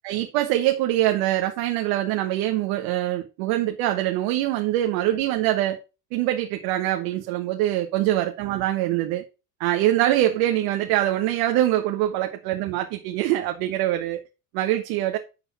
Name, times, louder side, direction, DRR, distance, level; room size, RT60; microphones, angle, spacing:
voice 1, 0.0-5.8 6.1-9.2 9.6-14.2 14.5-15.2, right 14 dB, 70° right, 1.4 m, -24 dB
12.0 x 4.1 x 5.5 m
hypercardioid pair, 75°, 49 cm